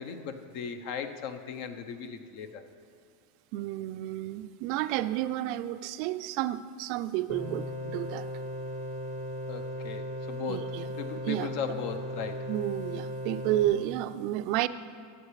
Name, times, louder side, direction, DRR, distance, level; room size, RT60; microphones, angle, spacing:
voice 1, 0.0-2.6 9.5-12.5, left 6 dB, 60° left, 8 dB, 0.7 m, -37 dB
voice 2, 3.5-8.3 10.5-10.9 11.3-11.5 12.5-14.7, right 14 dB, 60° right, 13 dB, 0.4 m, -31 dB
sound 1, 7.3-13.6, left 1 dB, 80° left, 2.3 m, -37 dB
14.0 x 8.2 x 3.2 m, 2.3 s
hypercardioid pair, 110°, 0 cm